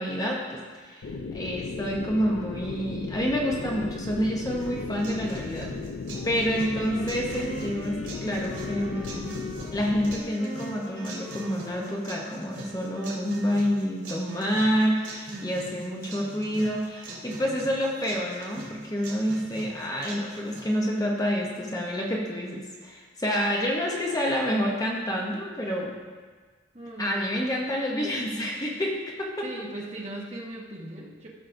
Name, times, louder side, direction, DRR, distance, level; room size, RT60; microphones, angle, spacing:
voice 1, 0.0-5.7 6.2-9.3 9.7-25.9 27.0-29.5, equal, 20° left, -2 dB, 0.8 m, -28 dB
sound 1, 1.0-10.2, left 4 dB, 80° left, 0.4 m, -36 dB
sound 2, 4.6-20.6, right 2 dB, 85° right, 2.7 m, -44 dB
Wind instrument woodwind instrument, 6.1-12.8, left 2 dB, 35° left, 2.8 m, -41 dB
voice 2, 15.3-16.5 17.1-17.7 26.7-27.3 29.4-31.3, right 1 dB, 35° right, -3 dB, 1.1 m, -40 dB
14.5 x 6.3 x 2.6 m, 1.5 s
head